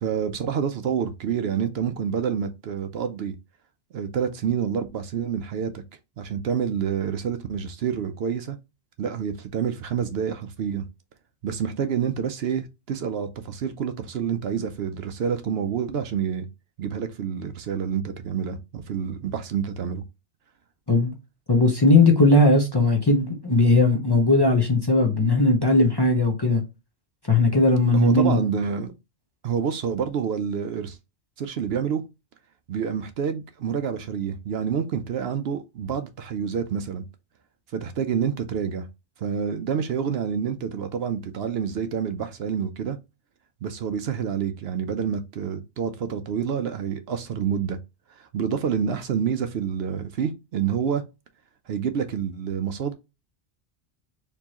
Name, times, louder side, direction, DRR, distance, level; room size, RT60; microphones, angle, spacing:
voice 1, 0.0-3.3 3.9-5.8 6.2-8.6 9.0-10.9 11.4-16.5 16.8-20.0 27.9-28.9 29.4-31.0 31.4-32.0 32.7-37.0 37.7-38.9 39.2-43.0 43.6-47.8 48.1-51.0 51.7-52.9, right 7 dB, 70° right, 0.8 m, -28 dB
voice 2, 21.5-26.6 27.3-28.4, left 2 dB, 25° left, 0.7 m, -18 dB
4.5 x 3.1 x 2.9 m
omnidirectional pair, 1.2 m